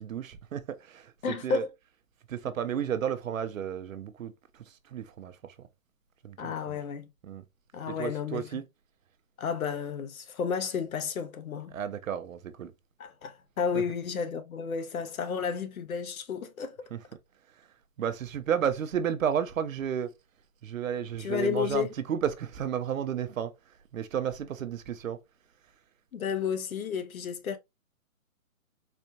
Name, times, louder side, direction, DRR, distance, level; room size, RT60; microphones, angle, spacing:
voice 1, 0.0-1.6 2.3-5.7 6.2-6.8 7.2-7.4 7.9-8.6 11.7-12.7 13.7-13.8 16.9-17.0 17.6-17.7 18.0-20.1 20.6-23.5 23.9-25.2, right 8 dB, 70° right, 0.7 m, -32 dB
voice 2, 1.2-1.7 6.4-7.1 7.7-8.4 9.4-11.7 13.0-16.8 21.2-21.9 26.1-27.6, left 6 dB, 90° left, 0.8 m, -32 dB
4.2 x 2.2 x 2.7 m
hypercardioid pair, 180°, 41 cm